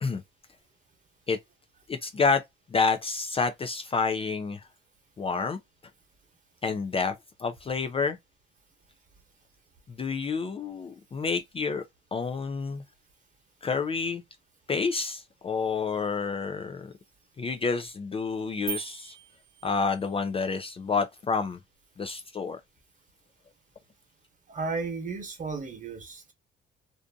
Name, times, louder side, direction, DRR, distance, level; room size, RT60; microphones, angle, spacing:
voice 1, 1.9-2.4 2.7-4.6 5.2-5.6 6.6-7.1 7.4-8.2 9.9-11.8 12.1-12.8 13.6-14.2 14.7-16.9 17.4-19.2 19.6-21.6 22.0-22.6, left 4 dB, 30° left, 0.4 m, -29 dB
sound 1, 18.7-20.2, right 10 dB, 85° right, 0.6 m, -40 dB
voice 2, 24.5-26.3, right 4 dB, 40° right, 1.1 m, -34 dB
2.5 x 2.5 x 2.3 m
cardioid pair, 90°, 20 cm